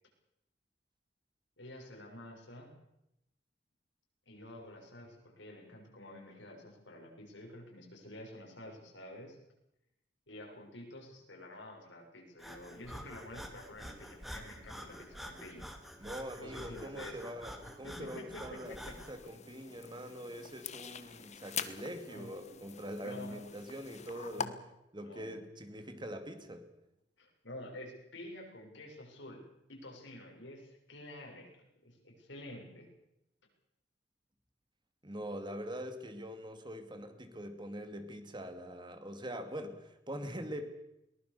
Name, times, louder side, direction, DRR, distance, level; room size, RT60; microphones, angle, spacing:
voice 1, 1.6-2.7 4.3-9.4 10.3-15.7 16.4-17.3 17.8-19.0 22.1-22.3 23.0-23.4 24.3-24.5 25.0-25.4 27.2-32.9, left 1 dB, 85° left, 1 dB, 6.7 m, -49 dB
Breathing, 12.4-19.2, equal, ahead, 2.6 m, -48 dB
voice 2, 16.0-24.5 24.9-26.7 35.0-40.7, equal, 25° right, 8 dB, 2.4 m, -43 dB
sound 1, 18.6-24.5, left 6 dB, 40° left, 1.2 m, -44 dB
22.5 x 19.5 x 6.9 m, 0.86 s
head